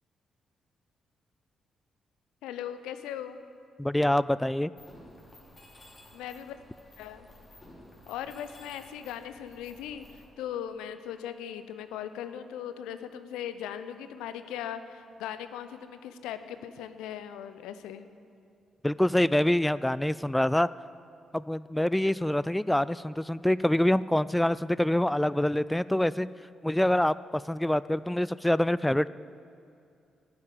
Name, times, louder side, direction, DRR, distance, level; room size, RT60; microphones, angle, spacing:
voice 1, 2.4-3.4 6.1-6.6 7.0-7.3 8.1-18.1, left 9 dB, 80° left, 11 dB, 0.6 m, -39 dB
voice 2, 3.8-4.7 18.8-20.7 21.3-26.3 26.6-29.1, left 1 dB, 10° left, 18 dB, 0.3 m, -25 dB
Mechanisms, 4.8-10.2, left 1 dB, 35° left, 3.3 m, -53 dB
9.8 x 8.6 x 9.1 m, 2.5 s
hypercardioid pair, 45°, 0 cm